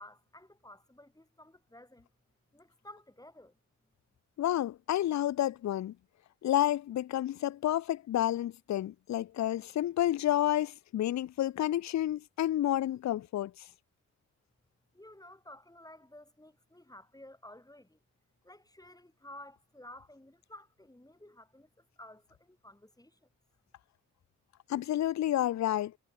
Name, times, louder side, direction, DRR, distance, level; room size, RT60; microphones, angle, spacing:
voice 1, 0.0-2.1 2.5-3.6 14.9-18.0 18.4-23.2, left 1 dB, 10° left, 3.8 m, -53 dB
voice 2, 4.4-5.9 6.4-13.5 24.7-25.9, left 12 dB, 60° left, 0.5 m, -30 dB
cardioid pair, 55°, 31 cm